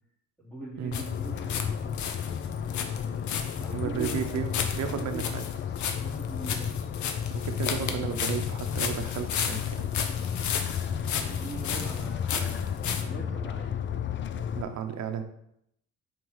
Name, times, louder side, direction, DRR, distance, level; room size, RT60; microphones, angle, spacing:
voice 1, 0.4-1.7 3.6-5.3 6.0-6.7 11.1-14.0, right 2 dB, 5° left, -7 dB, 2.8 m, -42 dB
sound 1, 0.9-1.7 1.9-13.0, left 7 dB, 70° left, 0.8 m, -34 dB
sound 2, 0.9-14.6, left 8 dB, 40° left, 0.4 m, -32 dB
voice 2, 3.7-4.5 4.7-5.4 7.4-9.9 11.4-11.6 14.5-15.2, right 8 dB, 65° right, 7 dB, 0.9 m, -33 dB
4.7 x 4.5 x 5.6 m, 0.76 s
cardioid pair, 90°, 30 cm